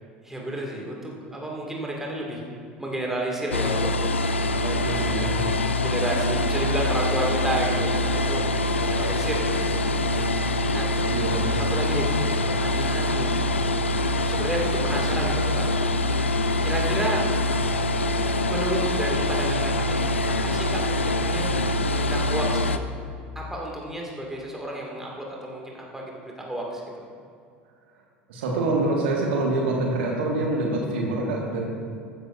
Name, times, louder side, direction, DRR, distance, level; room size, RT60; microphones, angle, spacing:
voice 1, 0.2-2.4 2.8-3.9 4.6-9.7 10.7-11.2 11.5-13.7 14.3-15.7 16.6-17.3 18.5-20.1 20.4-21.5 21.9-22.8 23.4-27.0, right 1 dB, 5° right, -2 dB, 2.1 m, -31 dB
sound 1, 3.5-22.8, left 1 dB, 85° left, 0.4 m, -24 dB
voice 2, 4.8-5.4 11.1-11.4 28.3-31.6, right 2 dB, 65° right, -1 dB, 1.7 m, -25 dB
14.5 x 11.0 x 2.6 m, 2.3 s
figure-of-eight pair, 75°, 6 cm